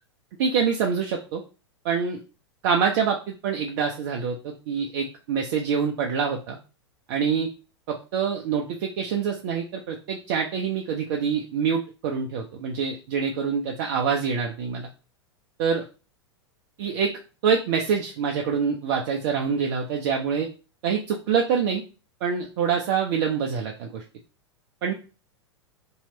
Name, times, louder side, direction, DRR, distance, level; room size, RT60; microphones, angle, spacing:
voice 1, 0.4-1.4 1.8-2.2 2.6-6.6 7.1-7.5 7.9-14.9 15.6-15.8 16.8-17.1 17.4-20.5 20.8-21.8 22.2-24.0 24.8-24.9, right 6 dB, 45° right, 1 dB, 0.5 m, -25 dB
3.1 x 2.9 x 2.9 m, 0.33 s
figure-of-eight pair, 95°, 15 cm